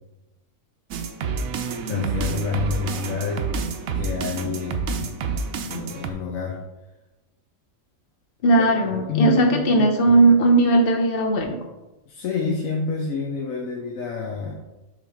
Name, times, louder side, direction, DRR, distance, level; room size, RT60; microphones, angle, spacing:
sound 1, 0.9-6.1, right 5 dB, 80° right, 1.1 m, -28 dB
voice 1, 1.8-3.4 3.9-5.2 5.6-6.6 8.9-9.9 12.1-14.6, left 4 dB, 75° left, 0 dB, 1.2 m, -28 dB
voice 2, 8.4-11.6, right 2 dB, 45° left, 2 dB, 1.0 m, -17 dB
6.4 x 3.3 x 4.9 m, 1.0 s
omnidirectional pair, 1.5 m